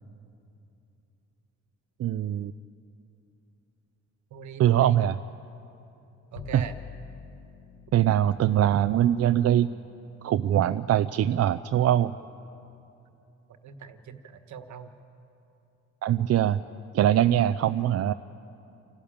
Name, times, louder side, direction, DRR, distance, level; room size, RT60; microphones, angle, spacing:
voice 1, 2.0-2.5 4.6-5.2 6.5-6.6 7.9-9.7 10.2-12.1 16.0-16.6 16.9-18.1, right 11 dB, 55° right, 11 dB, 0.5 m, -22 dB
voice 2, 4.3-5.0 6.3-6.7 13.6-14.9, right 5 dB, 70° right, 8 dB, 1.4 m, -41 dB
Bowed string instrument, 6.3-12.8, left 6 dB, 80° left, 1.3 m, -49 dB
28.5 x 12.5 x 8.8 m, 2.8 s
cardioid pair, 90°, 30 cm